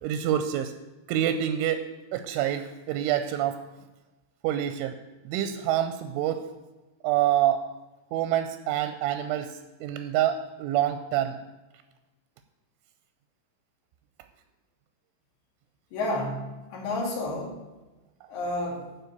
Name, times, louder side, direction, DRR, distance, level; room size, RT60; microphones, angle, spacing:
voice 1, 0.0-0.7 1.1-1.9 2.1-3.6 4.4-5.0 5.2-6.4 7.0-7.6 8.1-11.4, right 11 dB, 85° right, 9 dB, 2.9 m, -27 dB
voice 2, 15.9-17.6 18.3-18.9, left 1 dB, 60° left, -2 dB, 3.9 m, -31 dB
12.0 x 5.1 x 8.0 m, 1.1 s
omnidirectional pair, 5.8 m